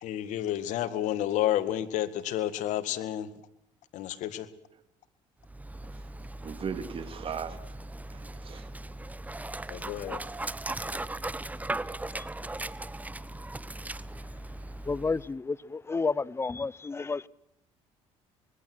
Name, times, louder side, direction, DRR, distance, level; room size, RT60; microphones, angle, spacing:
voice 1, 0.0-3.3 3.9-4.5 9.7-10.2, left 12 dB, 75° left, 2.0 m, -30 dB
Dog, 5.4-15.4, right 2 dB, 10° right, 1.0 m, -38 dB
voice 2, 5.9-7.8 8.1-8.7, right 6 dB, 45° right, 2.6 m, -39 dB
voice 3, 14.8-17.3, left 4 dB, 20° left, 0.8 m, -31 dB
25.5 x 21.5 x 6.3 m
supercardioid pair, 85°, 13 cm